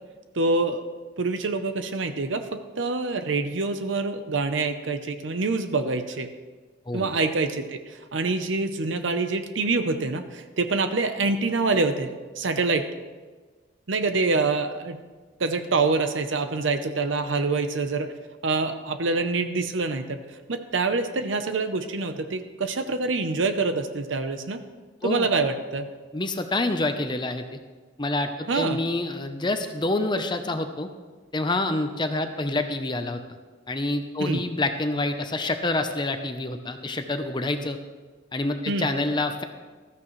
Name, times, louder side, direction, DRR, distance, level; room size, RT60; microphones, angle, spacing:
voice 1, 0.3-0.9 1.2-6.3 6.9-12.8 13.9-15.0 15.4-18.1 18.4-20.2 20.5-24.6 25.0-25.9 28.5-28.8 34.2-34.4 38.7-38.9, right 3 dB, 75° right, 8 dB, 0.8 m, -26 dB
voice 2, 26.1-27.4 28.0-30.9 31.3-33.2 33.7-37.8 38.3-39.4, left 2 dB, 25° left, 7 dB, 0.7 m, -27 dB
14.5 x 13.5 x 3.2 m, 1.4 s
head